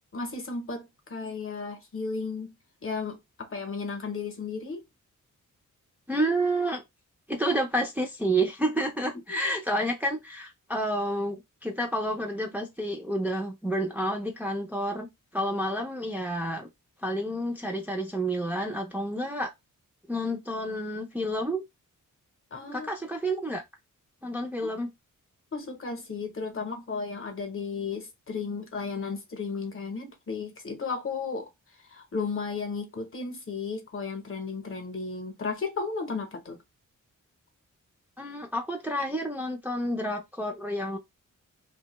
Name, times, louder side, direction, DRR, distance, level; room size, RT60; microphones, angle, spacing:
voice 1, 0.1-2.5 2.8-4.8 9.3-9.4 22.5-22.9 24.6-24.7 25.5-31.5 31.9-36.6, left 4 dB, 40° left, 0.8 m, -34 dB
voice 2, 6.1-6.8 7.3-16.7 17.0-19.5 20.1-21.6 22.7-23.6 24.2-24.9 38.2-41.0, right 1 dB, 5° right, 0.5 m, -29 dB
2.6 x 2.3 x 2.9 m
wide cardioid pair, 105°, 32 cm